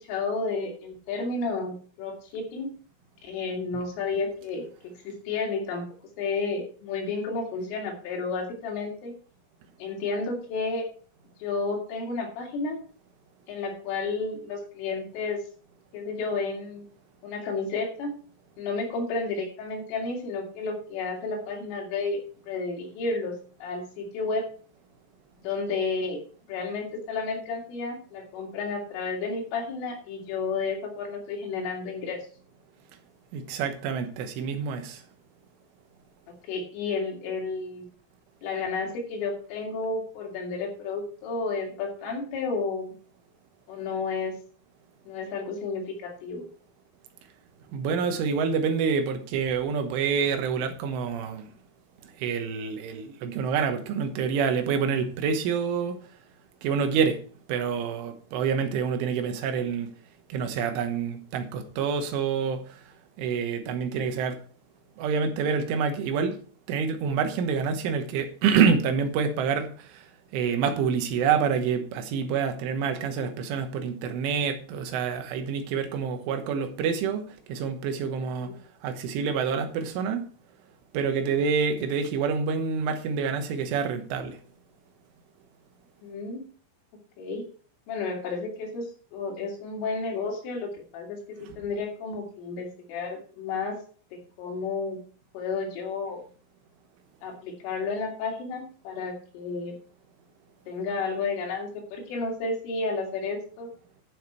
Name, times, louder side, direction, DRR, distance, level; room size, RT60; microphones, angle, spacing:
voice 1, 0.1-2.7 3.2-4.7 5.1-5.8 6.2-9.1 9.8-10.9 11.4-12.8 13.5-15.4 15.9-16.8 17.2-18.2 18.6-23.4 23.6-24.5 25.4-26.2 26.5-32.3 36.5-37.9 38.4-42.9 43.7-44.4 45.1-46.5 78.4-78.5 81.2-81.4 86.0-86.4 87.2-87.4 87.9-93.8 94.4-95.0 95.3-96.2 97.2-99.8 100.7-103.7, left 4 dB, 80° left, 5.2 m, -31 dB
voice 2, 33.3-35.0 47.7-51.5 52.2-56.0 56.6-57.2 57.5-59.9 60.3-62.8 63.2-64.4 65.0-66.4 66.7-70.1 70.3-78.5 78.8-80.3 80.9-84.4, right 6 dB, 85° right, 3.6 m, -27 dB
12.5 x 6.6 x 4.6 m
omnidirectional pair, 5.6 m